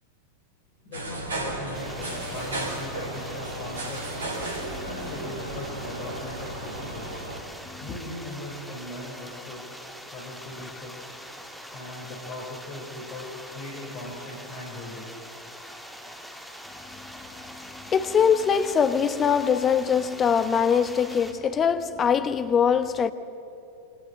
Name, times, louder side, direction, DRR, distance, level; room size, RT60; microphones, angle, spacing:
voice 1, 0.8-4.1 4.8-7.2 7.8-9.8 10.1-11.1 11.7-15.1, left 1 dB, 40° left, 5.4 m, -39 dB
sound 1, 0.9-7.4, right 1 dB, 70° right, 3.9 m, -34 dB
sound 2, 1.7-21.3, equal, ahead, 2.6 m, -43 dB
voice 2, 17.4-23.1, left 7 dB, 25° left, 1.2 m, -23 dB
28.5 x 25.0 x 6.6 m
figure-of-eight pair, 90°, 0 cm